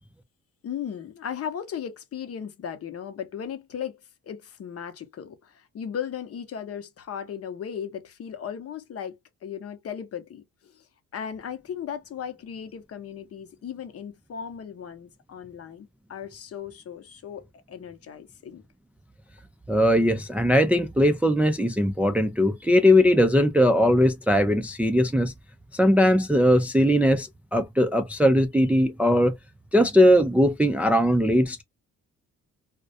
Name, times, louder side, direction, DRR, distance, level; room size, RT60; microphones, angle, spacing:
voice 1, 0.6-4.0 4.2-9.1 9.4-10.9 11.1-18.6, left 8 dB, 50° left, 0.7 m, -36 dB
voice 2, 19.7-25.3 25.7-29.3 29.7-31.6, equal, 5° right, 0.3 m, -20 dB
2.3 x 2.1 x 2.6 m
cardioid pair, 90°, 30 cm